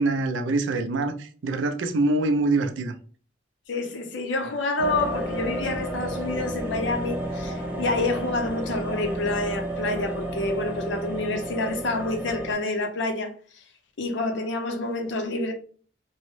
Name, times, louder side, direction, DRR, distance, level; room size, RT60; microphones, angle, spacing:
voice 1, 0.0-2.9, right 2 dB, 70° right, 0.4 m, -24 dB
voice 2, 3.7-13.6 14.0-15.5, left 2 dB, 70° left, 0.5 m, -28 dB
sound 1, 4.8-12.5, right 1 dB, 10° right, 0.6 m, -32 dB
3.0 x 2.0 x 3.0 m
head